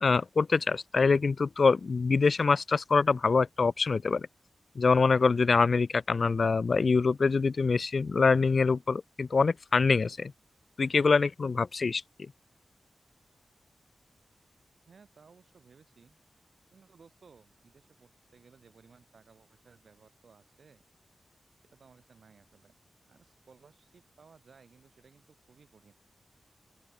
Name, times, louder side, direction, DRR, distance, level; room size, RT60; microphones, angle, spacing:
voice 1, 0.0-4.3 4.8-10.3 10.8-12.0, left 4 dB, 55° left, 0.5 m, -25 dB
voice 2, 14.9-16.2 16.7-20.8 21.7-22.7 23.1-25.9, right 5 dB, 70° right, 6.0 m, -59 dB
open air
wide cardioid pair, 130°, 0 cm